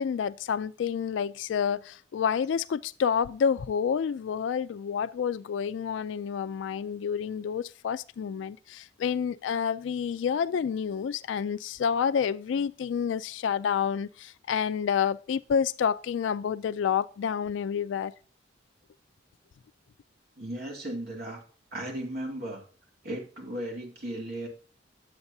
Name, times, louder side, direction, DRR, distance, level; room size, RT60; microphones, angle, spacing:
voice 1, 0.0-18.1, left 7 dB, 80° left, 0.3 m, -29 dB
voice 2, 20.4-21.4 21.7-22.6 23.0-24.5, right 1 dB, 55° right, 2.3 m, -36 dB
11.0 x 7.9 x 2.7 m
head